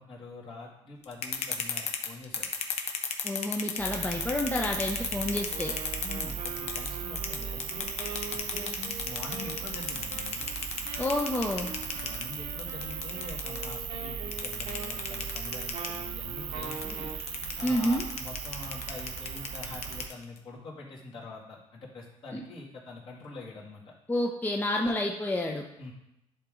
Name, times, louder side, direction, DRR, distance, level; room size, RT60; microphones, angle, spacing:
voice 1, 0.0-2.5 6.0-7.9 8.3-10.5 12.0-17.1 17.6-23.9 25.8-25.9, left 3 dB, 55° left, -4 dB, 2.3 m, -44 dB
sound 1, 1.0-6.9 7.2-13.8 14.3-16.0 16.6-20.4, left 7 dB, 70° left, 0.9 m, -34 dB
voice 2, 3.2-5.7 11.0-11.7 17.6-18.0 22.3-22.4 24.1-25.6, left 1 dB, 15° left, 1 dB, 0.6 m, -29 dB
sound 2, 3.8-20.1, right 7 dB, 60° right, 0.7 m, -38 dB
Wind instrument woodwind instrument, 5.5-17.2, right 5 dB, 85° right, 1.2 m, -44 dB
10.5 x 3.8 x 3.8 m, 0.83 s
cardioid pair, 105°, 11 cm